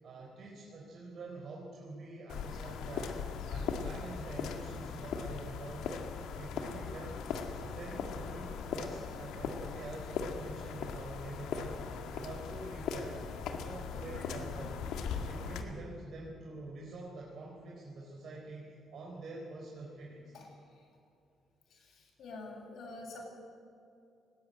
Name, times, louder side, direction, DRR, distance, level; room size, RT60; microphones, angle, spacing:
voice 1, 0.0-3.2 3.5-7.3 7.6-11.8 12.1-14.7 15.2-20.4, right 2 dB, 60° right, -2 dB, 4.0 m, -46 dB
sound 1, 2.3-15.6, left 6 dB, 85° left, 1.9 m, -39 dB
voice 2, 21.7-23.2, left 3 dB, 70° left, -1 dB, 7.5 m, -47 dB
20.5 x 16.5 x 9.0 m, 2.6 s
cardioid pair, 90°, 0 cm